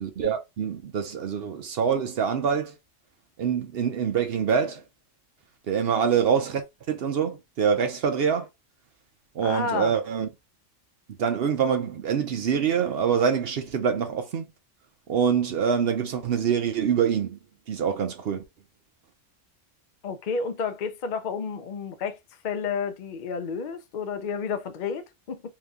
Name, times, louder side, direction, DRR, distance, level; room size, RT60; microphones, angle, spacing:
voice 1, 0.0-2.7 3.4-4.8 5.7-8.5 9.3-10.3 11.2-14.5 15.1-17.4 17.7-18.4, right 7 dB, 60° right, 0.7 m, -25 dB
voice 2, 9.4-9.9 20.0-22.2 22.4-25.4, left 5 dB, 55° left, 0.5 m, -31 dB
2.9 x 2.6 x 3.4 m
omnidirectional pair, 1.3 m